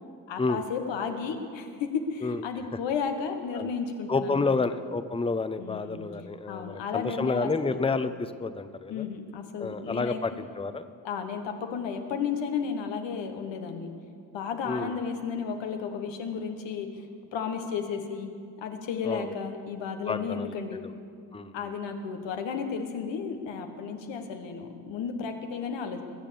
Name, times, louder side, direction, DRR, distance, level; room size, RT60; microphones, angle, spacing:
voice 1, 0.3-4.5 5.6-6.1 6.5-7.8 8.9-10.4 11.0-13.9 14.3-16.9 17.3-18.3 18.6-20.8 21.5-26.0, left 6 dB, 90° left, 5 dB, 1.4 m, -33 dB
voice 2, 4.1-9.1 9.6-10.9 14.7-15.0 19.0-19.3 20.1-20.9 21.3-21.5, left 3 dB, 15° left, 11 dB, 0.7 m, -30 dB
21.5 x 7.5 x 6.9 m, 2.3 s
supercardioid pair, 50°, 43 cm